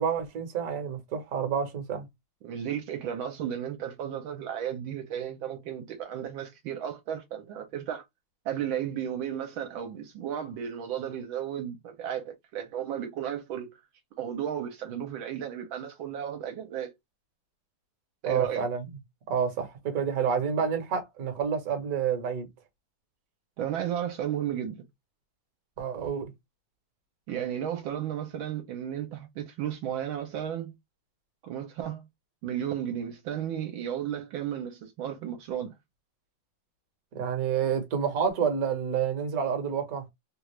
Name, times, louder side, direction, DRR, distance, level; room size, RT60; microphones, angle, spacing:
voice 1, 0.0-2.1 18.3-18.9 19.3-22.5 25.8-26.3 37.1-40.0, right 7 dB, 50° right, 1.2 m, -29 dB
voice 2, 2.4-8.0 8.4-13.8 14.2-16.9 18.2-18.7 23.6-24.8 27.3-30.7 31.4-32.0 32.4-35.7, right 9 dB, 70° right, 1.4 m, -34 dB
3.5 x 2.4 x 3.0 m
omnidirectional pair, 2.4 m